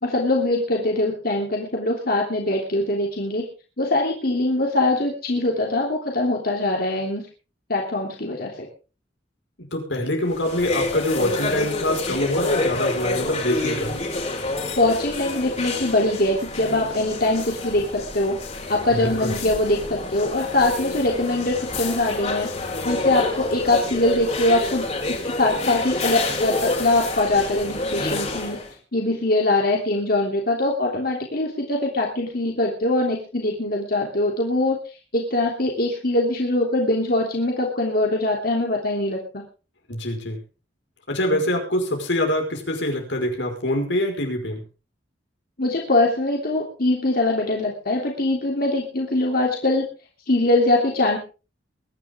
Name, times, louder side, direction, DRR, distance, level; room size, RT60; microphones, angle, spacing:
voice 1, 0.0-3.4 3.8-7.2 7.7-8.7 14.8-18.4 18.7-22.5 22.8-28.6 28.9-34.8 35.1-39.4 41.3-41.4 45.6-49.8 50.3-51.2, left 2 dB, 55° left, 0 dB, 3.3 m, -22 dB
voice 2, 9.7-14.0 18.9-19.3 39.9-40.4 41.1-44.6, left 1 dB, 80° left, 3 dB, 5.2 m, -24 dB
sound 1, 10.2-28.7, left 2 dB, 40° left, 4.4 m, -28 dB
23.0 x 11.0 x 3.7 m, 0.35 s
head